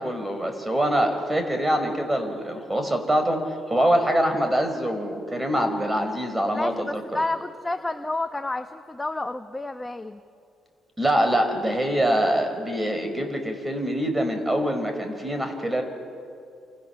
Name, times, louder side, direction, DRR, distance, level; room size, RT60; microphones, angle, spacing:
voice 1, 0.0-3.4 3.7-7.2 11.0-15.8, equal, 15° right, 6 dB, 4.9 m, -24 dB
voice 2, 6.5-10.2, left 2 dB, 15° left, 7 dB, 1.1 m, -30 dB
29.0 x 28.0 x 7.1 m, 2.4 s
cardioid pair, 90°, 0 cm